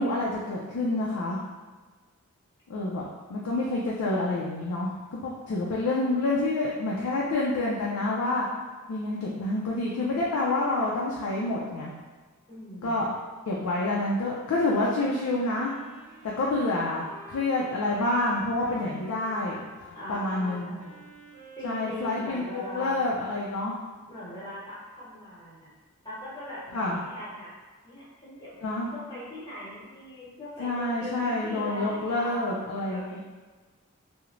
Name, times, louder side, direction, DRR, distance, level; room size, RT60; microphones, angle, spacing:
voice 1, 0.0-1.4 2.7-3.0 3.3-8.5 8.9-11.9 12.8-13.1 13.5-15.7 16.4-19.6 20.1-20.7 21.6-23.8 26.7-27.0 28.6-28.9 30.6-33.2, left 2 dB, 85° left, -4 dB, 0.4 m, -28 dB
voice 2, 12.5-13.1 18.8-18.9 19.9-21.0 21.5-23.0 24.1-25.7 26.0-27.5 27.8-33.1, left 1 dB, 20° left, -9 dB, 0.9 m, -41 dB
Wind instrument woodwind instrument, 14.5-23.0, right 2 dB, 70° right, 0.9 m, -50 dB
3.0 x 2.0 x 2.4 m, 1.4 s
head